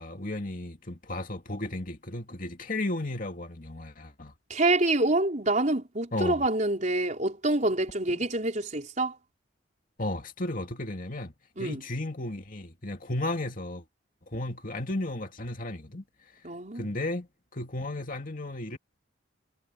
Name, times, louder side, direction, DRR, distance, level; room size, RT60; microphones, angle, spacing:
voice 1, 0.0-4.3 6.1-6.5 10.0-11.3 11.6-13.8 14.3-16.0 16.7-18.8, left 1 dB, 45° left, 2.6 m, -34 dB
voice 2, 4.5-9.1 11.6-11.8 16.4-16.9, right 2 dB, 40° right, 4.8 m, -26 dB
head